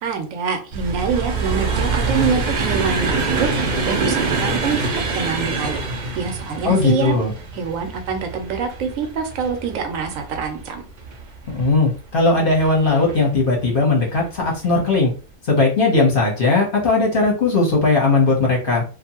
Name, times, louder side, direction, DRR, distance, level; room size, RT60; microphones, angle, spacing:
voice 1, 0.0-5.8 6.2-7.2 7.5-10.8, right 6 dB, 85° right, 5 dB, 1.0 m, -25 dB
sound 1, 0.7-11.8 12.5-13.1 14.0-14.2 14.5-14.7, right 3 dB, 50° right, 0.6 m, -25 dB
voice 2, 6.6-7.3 11.5-15.1 15.5-18.8, left 3 dB, 45° left, -1 dB, 0.9 m, -18 dB
2.6 x 2.4 x 2.8 m, 0.37 s
omnidirectional pair, 1.4 m